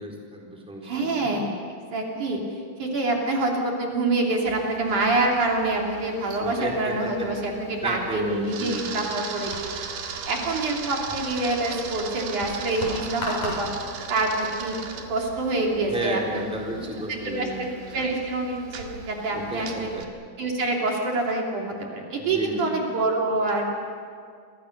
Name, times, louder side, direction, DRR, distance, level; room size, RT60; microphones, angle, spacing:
voice 1, 0.0-1.4 6.4-7.3 7.8-9.1 15.9-17.6 18.0-18.1 19.3-20.0 22.2-22.8, right 1 dB, ahead, -2 dB, 3.8 m, -32 dB
voice 2, 0.8-1.5 1.9-2.4 2.8-9.5 10.3-13.7 14.1-14.8 15.1-16.4 16.8-19.9 20.4-23.7, right 2 dB, 60° right, -1 dB, 4.4 m, -26 dB
Camera, 4.5-20.0, right 6 dB, 90° right, 3.8 m, -38 dB
sound 1, 9.4-16.0, left 1 dB, 55° left, 9.3 m, -39 dB
29.0 x 24.5 x 6.7 m, 2.2 s
omnidirectional pair, 4.1 m